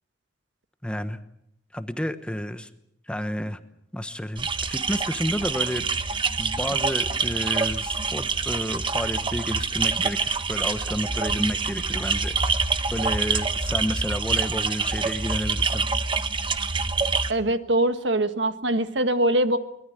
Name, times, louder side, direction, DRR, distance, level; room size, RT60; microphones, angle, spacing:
voice 1, 0.8-1.2 1.7-2.7 3.1-3.6 3.9-5.9 6.4-12.3 12.9-15.9, equal, 5° left, 10 dB, 1.1 m, -30 dB
sound 1, 4.4-17.3, right 4 dB, 30° right, 1.1 m, -26 dB
voice 2, 17.3-19.6, right 1 dB, 85° right, 10 dB, 1.5 m, -23 dB
23.0 x 20.5 x 7.9 m, 0.78 s
head